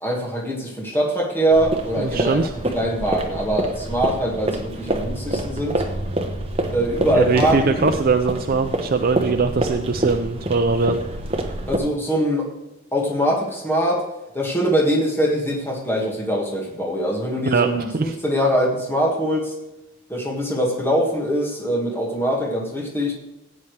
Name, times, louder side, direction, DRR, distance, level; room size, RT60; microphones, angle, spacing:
voice 1, 0.0-2.4 2.7-5.8 6.7-7.9 11.7-12.5 12.9-14.1 14.3-19.5 20.1-23.1, equal, 10° left, -2 dB, 1.8 m, -22 dB
sound 1, 1.5-11.8, right 1 dB, 25° right, 0.9 m, -27 dB
voice 2, 2.0-2.5 7.1-11.0 11.3-11.5 17.5-18.2, right 4 dB, 40° right, 6 dB, 0.4 m, -21 dB
16.5 x 8.6 x 3.3 m, 0.93 s
head